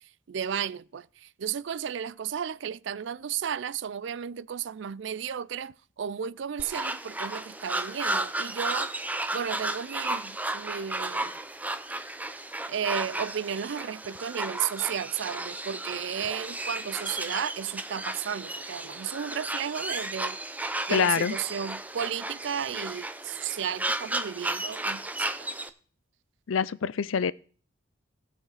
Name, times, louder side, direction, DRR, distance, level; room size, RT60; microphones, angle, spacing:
voice 1, 0.3-1.0 1.4-5.7 6.0-8.9 9.3-11.3 12.7-20.4 20.9-25.3, right 8 dB, 65° right, 0.4 m, -33 dB
sound 1, 6.6-25.7, right 2 dB, 10° right, 0.5 m, -34 dB
voice 2, 20.9-21.4 26.5-27.3, left 6 dB, 85° left, 0.5 m, -25 dB
18.5 x 6.4 x 4.0 m
head